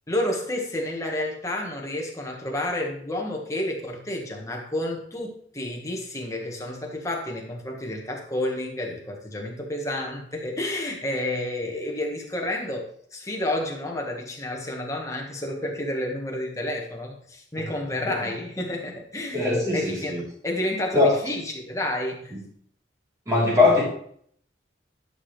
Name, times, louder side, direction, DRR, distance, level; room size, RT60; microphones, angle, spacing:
voice 1, 0.1-12.9 13.1-19.5 19.7-22.3, left 1 dB, 15° left, 0 dB, 1.6 m, -30 dB
voice 2, 19.3-20.2 20.9-21.1 22.3-22.4 23.3-23.8, left 3 dB, 20° right, -6 dB, 3.6 m, -21 dB
11.0 x 6.2 x 3.3 m, 0.63 s
head